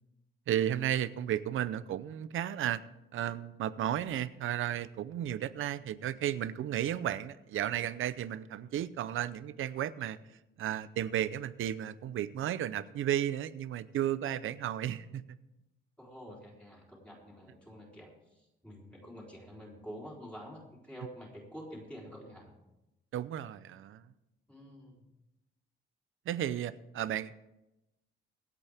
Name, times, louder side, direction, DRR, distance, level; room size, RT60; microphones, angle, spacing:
voice 1, 0.5-2.8 3.1-10.2 10.6-15.2 23.1-24.0 26.3-27.4, right 11 dB, 90° right, 15 dB, 0.6 m, -33 dB
voice 2, 16.0-22.5 24.5-25.0, equal, 5° left, -4 dB, 3.8 m, -48 dB
24.5 x 8.4 x 3.5 m, 0.95 s
wide cardioid pair, 155°, 20 cm